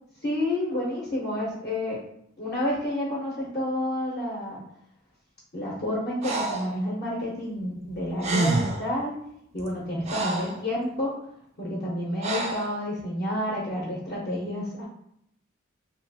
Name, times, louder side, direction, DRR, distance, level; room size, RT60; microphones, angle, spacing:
voice 1, 0.2-2.0 2.4-4.6 5.5-9.1 9.5-11.2 11.6-14.9, left 1 dB, 45° left, -6 dB, 0.7 m, -29 dB
Breathing, 6.2-6.7 7.9-8.0 8.2-8.9 9.6-10.6 12.2-12.7, right 2 dB, 35° right, 0.3 m, -28 dB
2.9 x 2.4 x 2.6 m, 0.73 s
head